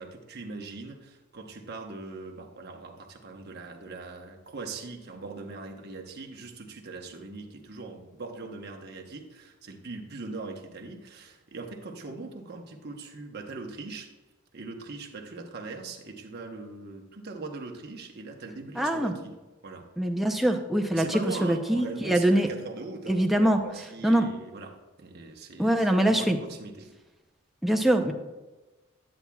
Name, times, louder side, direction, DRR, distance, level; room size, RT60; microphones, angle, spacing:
voice 1, 0.0-14.1 14.5-19.3 19.6-19.9 20.9-26.9, right 3 dB, 50° right, 2 dB, 1.0 m, -40 dB
voice 2, 18.8-19.1 20.0-22.5 23.1-23.6 24.0-24.3 25.6-26.4 27.6-28.1, right 1 dB, ahead, 2 dB, 0.6 m, -23 dB
9.9 x 8.5 x 2.3 m, 1.1 s
head